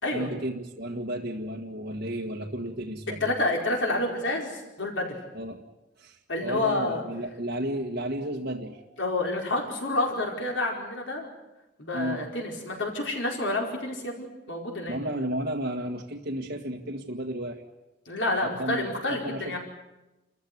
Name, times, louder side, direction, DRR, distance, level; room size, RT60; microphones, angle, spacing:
voice 1, 0.1-3.3 5.3-5.6 6.0-9.3 11.9-12.2 14.9-17.6 18.4-19.6, right 1 dB, 55° right, -1 dB, 1.8 m, -33 dB
voice 2, 3.2-5.2 6.3-7.0 9.0-11.3 11.8-15.0 18.1-19.6, left 2 dB, 85° left, 0 dB, 4.8 m, -29 dB
29.5 x 14.5 x 9.5 m, 1.0 s
head